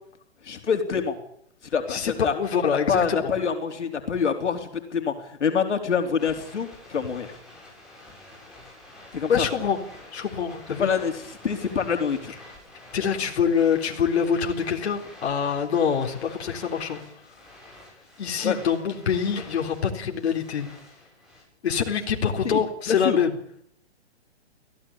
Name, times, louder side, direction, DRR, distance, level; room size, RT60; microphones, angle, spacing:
voice 1, 0.4-1.2 1.7-2.3 2.9-7.3 9.1-9.5 10.8-12.3 18.4-18.6 22.4-22.6 22.9-23.2, left 6 dB, 90° left, 5 dB, 4.1 m, -26 dB
voice 2, 1.9-3.2 9.3-9.8 10.1-10.9 12.9-17.0 18.2-20.7 21.6-23.3, left 7 dB, 65° left, 2 dB, 4.0 m, -25 dB
sound 1, 6.2-21.4, left 1 dB, ahead, 7.8 m, -47 dB
23.0 x 16.5 x 8.8 m, 0.69 s
hypercardioid pair, 155°, 34 cm